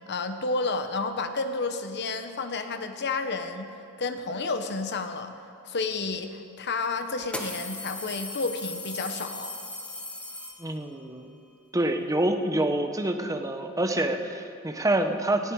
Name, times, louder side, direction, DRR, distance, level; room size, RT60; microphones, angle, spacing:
voice 1, 0.1-5.3 5.6-9.5, left 3 dB, 50° left, 8 dB, 1.0 m, -31 dB
sound 1, 6.1-6.2 7.2-11.0, left 2 dB, 5° left, 1.1 m, -37 dB
voice 2, 10.6-11.4 11.7-15.5, right 1 dB, 15° right, 6 dB, 0.9 m, -27 dB
19.0 x 15.0 x 4.7 m, 2.6 s
head